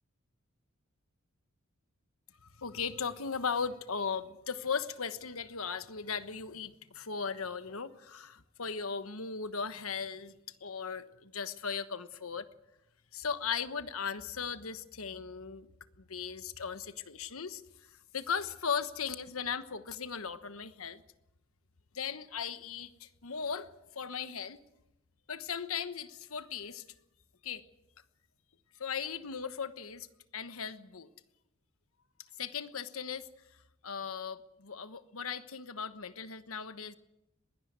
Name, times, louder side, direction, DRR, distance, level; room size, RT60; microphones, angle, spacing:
voice 1, 2.4-12.5 13.1-15.7 16.0-17.6 18.1-21.0 21.9-23.7 23.9-24.6 25.3-26.8 27.4-27.6 28.8-30.1 30.3-31.1 32.4-33.3 33.8-36.9, left 6 dB, 90° left, 11 dB, 1.2 m, -37 dB
21.0 x 17.0 x 8.1 m, 0.89 s
head